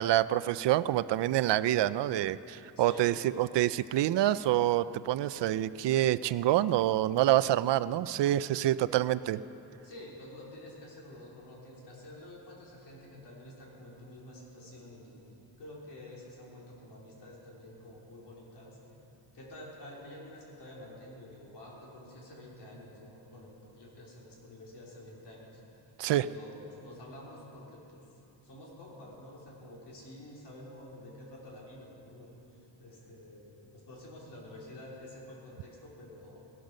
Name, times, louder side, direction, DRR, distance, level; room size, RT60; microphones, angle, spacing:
voice 1, 0.0-9.4 26.0-26.3, right 13 dB, 80° right, 16 dB, 0.5 m, -27 dB
voice 2, 2.8-3.1 9.8-18.8 19.3-25.6 25.8-28.1 28.4-36.4, left 1 dB, 75° left, -4 dB, 4.0 m, -49 dB
18.0 x 12.0 x 6.4 m, 2.9 s
wide cardioid pair, 180°, 41 cm